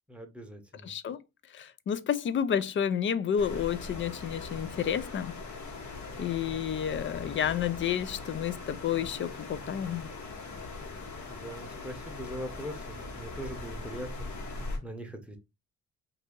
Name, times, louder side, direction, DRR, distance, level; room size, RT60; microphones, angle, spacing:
voice 1, 0.1-0.9 11.3-15.4, right 1 dB, 5° right, 0.8 m, -42 dB
voice 2, 0.8-1.2 1.5-5.4 6.2-10.1, left 8 dB, 40° left, 0.4 m, -30 dB
sound 1, 3.4-14.8, left 3 dB, 70° left, 1.2 m, -41 dB
2.7 x 2.7 x 3.6 m
cardioid pair, 90°, 30 cm